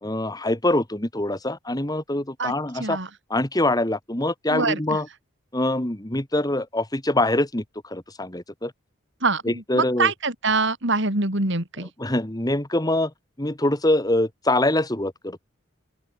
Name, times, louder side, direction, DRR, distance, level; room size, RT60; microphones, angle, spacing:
voice 1, 0.0-3.0 3.3-5.1 5.5-8.7 9.5-10.1 12.0-13.1 13.4-15.4, left 1 dB, 20° left, 1.9 m, -24 dB
voice 2, 2.4-3.1 4.5-5.0 9.2-11.9, right 3 dB, 60° right, 4.4 m, -25 dB
open air
head